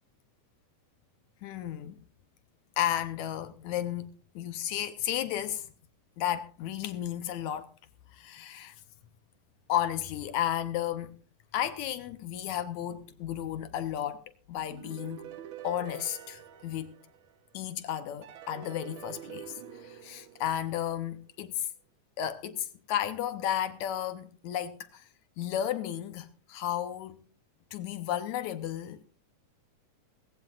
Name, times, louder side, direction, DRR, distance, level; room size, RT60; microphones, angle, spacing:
voice 1, 1.4-2.0 2.8-5.7 6.2-7.7 8.1-8.8 9.7-11.2 11.5-15.3 15.6-16.9 17.5-21.7 22.2-25.1 25.4-27.2 27.7-29.0, left 11 dB, 75° left, 2.0 m, -33 dB
sound 1, 14.7-17.6 18.2-21.1, right 9 dB, 90° right, 1.1 m, -46 dB
19.5 x 15.5 x 2.4 m
omnidirectional pair, 3.7 m